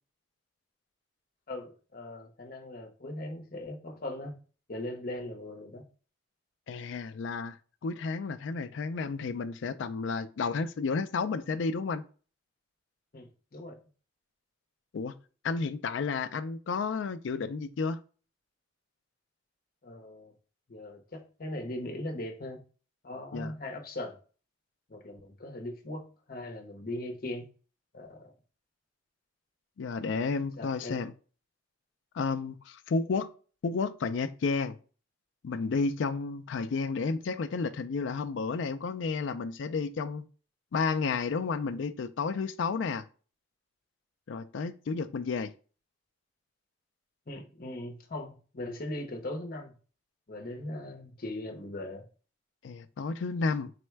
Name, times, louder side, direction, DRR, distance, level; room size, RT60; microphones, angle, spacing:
voice 1, 1.5-4.3 4.7-5.8 13.1-13.8 19.8-20.3 20.7-22.6 23.0-24.2 24.9-27.5 27.9-28.3 30.6-31.0 47.3-49.7 50.3-52.1, left 1 dB, 50° left, 0.7 m, -39 dB
voice 2, 6.7-7.6 7.8-12.0 14.9-15.2 15.4-18.0 23.3-23.5 29.8-31.1 32.1-33.3 33.6-34.8 35.4-40.2 40.7-43.0 44.3-45.5 52.6-53.7, left 4 dB, 70° left, 0.4 m, -31 dB
4.2 x 2.1 x 4.4 m
head